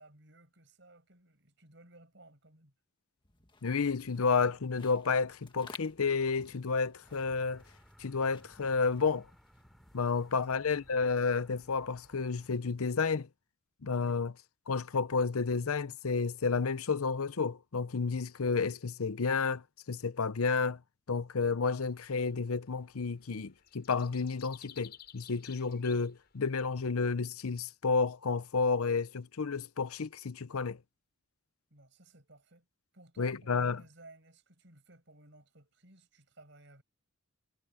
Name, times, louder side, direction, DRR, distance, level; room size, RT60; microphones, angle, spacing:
voice 1, 0.0-2.7 10.2-10.7 14.0-14.2 31.7-32.7 32.9-36.8, right 2 dB, 55° right, 7.5 m, -58 dB
sound 1, 3.2-10.5, left 4 dB, 20° left, 1.7 m, -56 dB
voice 2, 3.6-7.6 8.0-9.3 9.9-13.3 13.8-14.3 14.7-20.8 21.1-30.8 33.2-33.8, left 4 dB, 90° left, 0.7 m, -31 dB
sound 2, 7.0-12.5, equal, ahead, 4.8 m, -61 dB
sound 3, 21.9-26.7, left 10 dB, 45° left, 7.2 m, -54 dB
head